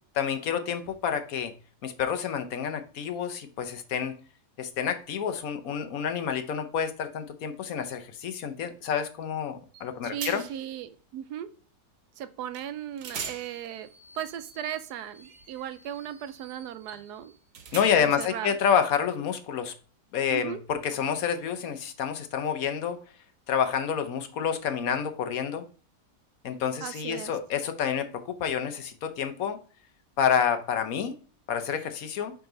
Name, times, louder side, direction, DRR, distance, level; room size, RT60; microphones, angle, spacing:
voice 1, 0.1-1.5 1.8-4.1 4.6-10.4 17.7-19.7 20.1-23.0 23.5-25.6 26.4-29.6 30.2-31.2 31.5-32.3, left 7 dB, 65° left, 8 dB, 1.2 m, -28 dB
sound 1, 9.7-9.9 10.2-10.7 12.5-12.7 13.0-18.3, right 6 dB, 60° right, 1.2 m, -43 dB
voice 2, 10.0-11.5 12.2-13.9 14.1-17.3 17.9-18.6 20.3-20.6 26.8-27.3, right 10 dB, 90° right, 12 dB, 1.2 m, -37 dB
5.2 x 4.8 x 3.8 m, 0.38 s
omnidirectional pair, 1.7 m